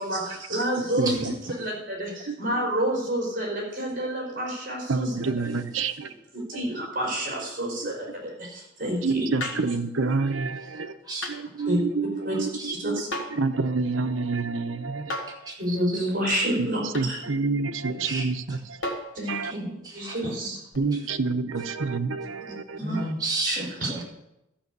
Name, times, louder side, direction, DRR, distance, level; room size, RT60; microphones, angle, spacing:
voice 1, 0.0-1.1 1.6-5.1 6.3-9.2 11.7-11.8 12.2-12.4 12.8-13.1 15.6-17.2 19.1-19.4 19.9-20.6 22.8-23.0 23.4-23.9, equal, 45° right, 4.7 m, -29 dB
voice 2, 0.8-1.3 2.3-2.4 4.9-6.1 6.5-6.6 7.8-7.9 9.0-11.0 11.3-13.0 13.3-15.5 16.6-18.9 19.3-19.5 20.1-20.2 20.7-23.1, right 4 dB, 90° right, 0.9 m, -28 dB
sound 1, 9.4-9.7 11.2-11.4 13.1-13.5 15.1-15.4 16.9-17.1 18.8-19.2 20.7-20.8, left 1 dB, 85° left, 1.7 m, -33 dB
voice 3, 15.5-15.8 18.0-18.2 19.5-20.3 22.8-24.0, right 2 dB, 20° right, 2.4 m, -32 dB
13.0 x 6.3 x 8.1 m
head